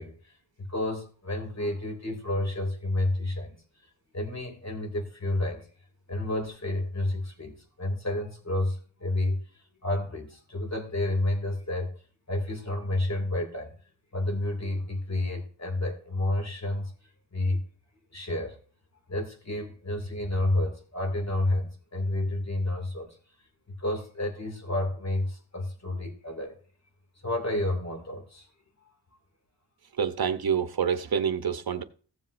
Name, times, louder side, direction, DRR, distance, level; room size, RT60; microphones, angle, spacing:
voice 1, 0.0-3.5 4.1-5.7 6.1-9.4 9.8-12.0 12.3-13.7 14.1-16.9 17.3-17.6 18.1-18.6 19.1-23.1 23.7-26.6 27.2-28.5, left 1 dB, 40° left, 2.4 m, -30 dB
voice 2, 29.9-31.8, right 7 dB, 55° right, 0.9 m, -27 dB
15.5 x 7.3 x 2.6 m
wide cardioid pair, 75°, 43 cm